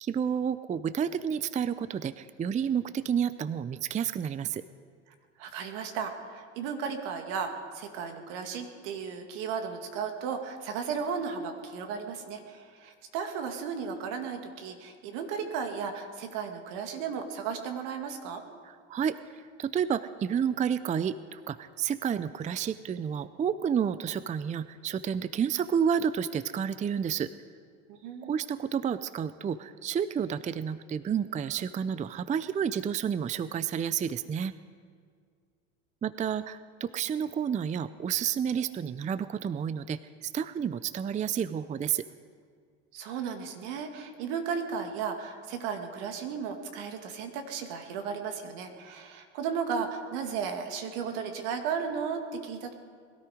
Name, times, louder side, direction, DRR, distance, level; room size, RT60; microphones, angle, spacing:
voice 1, 0.0-4.6 18.6-27.3 28.2-34.5 36.0-42.0, right 8 dB, 20° right, 15 dB, 0.5 m, -30 dB
voice 2, 5.4-18.4 27.9-28.4 42.9-52.7, right 6 dB, 75° right, 5 dB, 2.2 m, -35 dB
21.5 x 13.0 x 5.0 m, 2.1 s
supercardioid pair, 95°, 34 cm